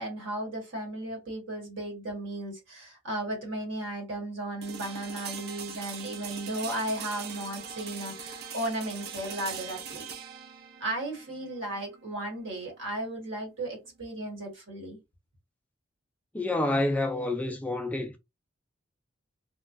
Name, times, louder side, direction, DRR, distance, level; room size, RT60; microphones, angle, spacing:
voice 1, 0.0-10.1 10.8-15.0, right 1 dB, 70° right, 1.4 m, -35 dB
sound 1, 4.6-14.5, right 7 dB, 50° right, 0.4 m, -42 dB
voice 2, 16.3-18.2, left 2 dB, 5° left, 0.3 m, -28 dB
3.0 x 2.2 x 2.5 m
head